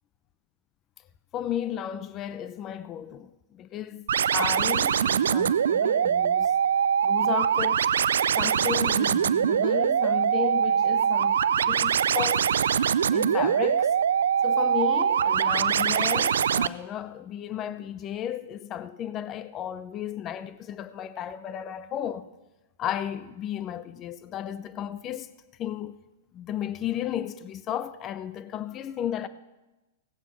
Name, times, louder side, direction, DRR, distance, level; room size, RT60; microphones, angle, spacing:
voice 1, 1.3-4.1 4.3-6.5 7.0-7.9 8.4-12.6 13.1-14.0 14.4-22.3 22.8-25.3 25.6-26.0 26.3-29.3, left 10 dB, 30° left, 0.6 m, -34 dB
sound 1, 4.1-16.7, right 8 dB, 90° right, 0.4 m, -23 dB
17.0 x 7.8 x 6.0 m
hypercardioid pair, 140°, 0 cm